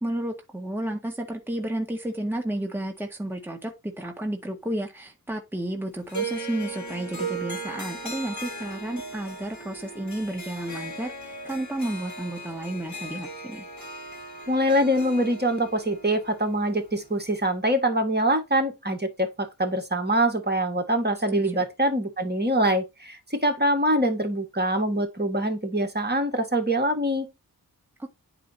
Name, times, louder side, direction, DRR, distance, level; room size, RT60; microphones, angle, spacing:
voice 1, 0.0-13.6 21.3-21.7, right 1 dB, 5° right, 1.8 m, -32 dB
Harp, 6.1-17.4, right 3 dB, 50° left, 2.4 m, -37 dB
voice 2, 14.5-27.3, right 1 dB, 25° right, 2.0 m, -24 dB
10.5 x 4.9 x 4.3 m
wide cardioid pair, 85°, 38 cm